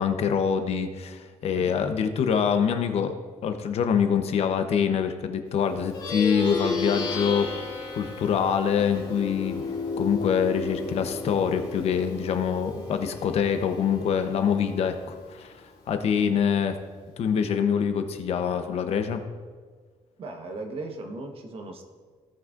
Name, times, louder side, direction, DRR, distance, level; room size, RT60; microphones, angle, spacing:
voice 1, 0.0-3.1 3.4-7.6 7.9-9.6 10.0-15.5 15.9-16.8 17.2-19.2, left 7 dB, 60° left, 8 dB, 0.8 m, -25 dB
Plucked string instrument, 5.8-15.5, left 3 dB, 45° left, 2.3 m, -34 dB
voice 2, 20.2-21.8, right 2 dB, 50° right, 4 dB, 1.2 m, -37 dB
17.0 x 6.1 x 2.5 m, 1.5 s
cardioid pair, 130°, 12 cm